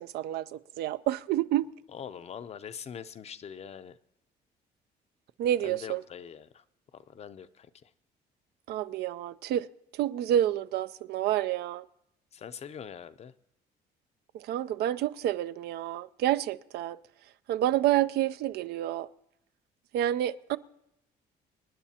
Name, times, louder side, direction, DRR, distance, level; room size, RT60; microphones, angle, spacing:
voice 1, 0.0-1.7 5.4-6.0 8.7-9.6 10.0-11.8 14.5-17.0 17.5-19.1 19.9-20.6, right 12 dB, 70° right, 0.4 m, -28 dB
voice 2, 1.9-4.0 5.6-6.6 6.9-7.9 12.3-13.3, left 7 dB, 40° left, 0.6 m, -43 dB
26.5 x 9.9 x 2.8 m
cardioid pair, 110°, 17 cm